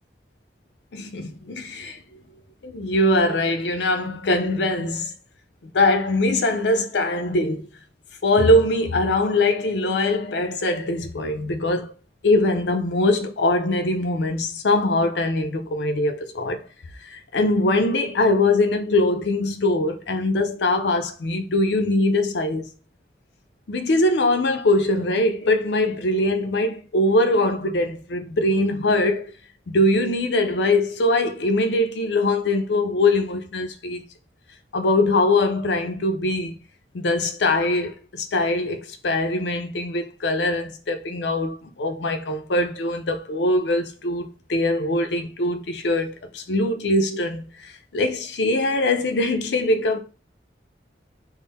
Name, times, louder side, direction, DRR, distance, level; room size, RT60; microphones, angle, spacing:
voice 1, 0.9-2.2 2.6-5.1 5.6-7.7 8.2-11.9 12.2-16.7 17.0-22.7 23.7-29.3 29.7-34.0 34.7-36.6 36.9-50.0, left 2 dB, 85° left, 0.5 m, -22 dB
3.6 x 2.1 x 4.0 m
head